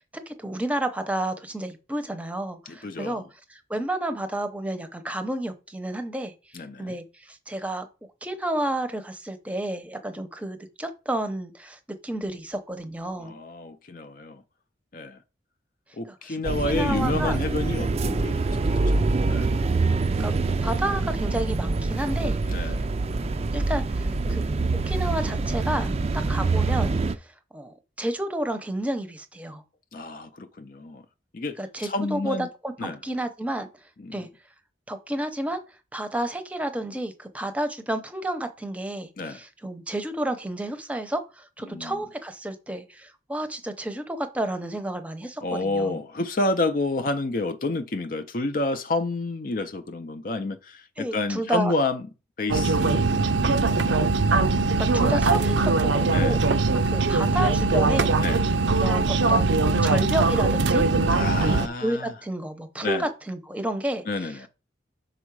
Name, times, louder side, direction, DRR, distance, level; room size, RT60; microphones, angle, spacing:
voice 1, 0.3-3.2 3.5-7.9 8.2-13.4 16.1-16.4 16.6-17.4 20.2-20.3 20.6-22.7 23.0-23.1 23.5-24.6 24.9-27.0 27.5-29.6 31.6-32.4 32.6-33.7 34.1-34.3 34.9-35.6 35.9-46.0 51.0-51.7 54.8-56.4 56.9-58.1 58.8-60.9 61.4-64.3, right 1 dB, 10° right, 0.7 m, -31 dB
voice 2, 2.7-3.2 6.5-7.0 13.2-14.4 14.9-15.2 16.0-19.6 22.5-22.8 29.9-31.0 31.3-32.5 32.8-33.0 34.0-34.2 39.2-39.4 41.7-42.0 45.4-52.0 52.4-53.2 53.7-54.1 56.1-56.4 58.2-58.4 59.7-59.9 61.1-62.1 62.8-63.1 64.1-64.5, left 2 dB, 50° left, 0.5 m, -29 dB
sound 1, 16.4-27.2, right 3 dB, 35° right, 0.4 m, -25 dB
sound 2, 52.5-61.7, right 3 dB, 85° right, 0.6 m, -21 dB
6.2 x 4.8 x 4.7 m
head